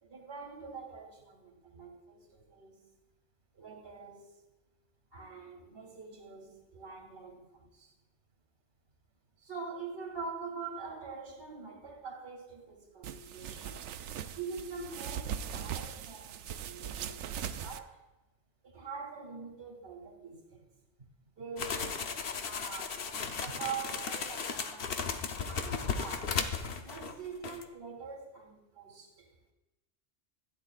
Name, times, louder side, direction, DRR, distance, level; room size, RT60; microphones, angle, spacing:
voice 1, 0.0-2.9 3.5-4.4 5.1-7.9 9.4-13.9 14.3-18.1 18.6-20.7 21.0-21.1 21.4-24.9 25.3-26.4 26.8-29.3, right 5 dB, 55° right, 2.6 m, -44 dB
sound 1, 13.0-17.8, right 8 dB, 90° right, 0.9 m, -40 dB
sound 2, 21.6-27.2 27.4-27.6, left 5 dB, 60° left, 0.9 m, -36 dB
15.0 x 10.0 x 2.4 m
omnidirectional pair, 1.2 m